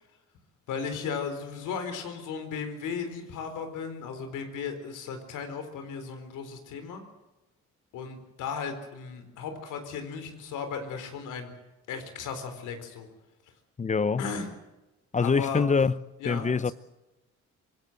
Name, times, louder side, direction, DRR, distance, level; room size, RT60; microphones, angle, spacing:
voice 1, 0.7-7.0 7.9-11.5 11.9-13.1 14.2-14.5 15.2-15.6 16.2-16.7, left 6 dB, 85° left, 4.2 m, -36 dB
voice 2, 13.8-14.2 15.1-16.0 16.2-16.7, left 5 dB, 25° left, 0.8 m, -24 dB
25.0 x 18.5 x 7.8 m
cardioid pair, 90°, 30 cm